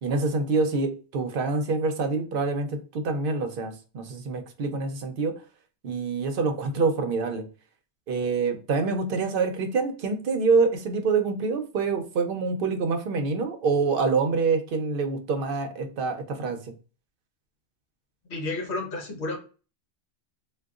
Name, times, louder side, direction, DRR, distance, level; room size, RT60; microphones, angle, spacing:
voice 1, 0.0-2.7 2.9-5.3 5.8-7.5 8.1-16.6, right 4 dB, 60° right, 6 dB, 0.7 m, -26 dB
voice 2, 18.3-19.4, left 2 dB, 65° left, 3 dB, 1.1 m, -31 dB
3.7 x 2.3 x 2.3 m, 0.36 s
omnidirectional pair, 1.2 m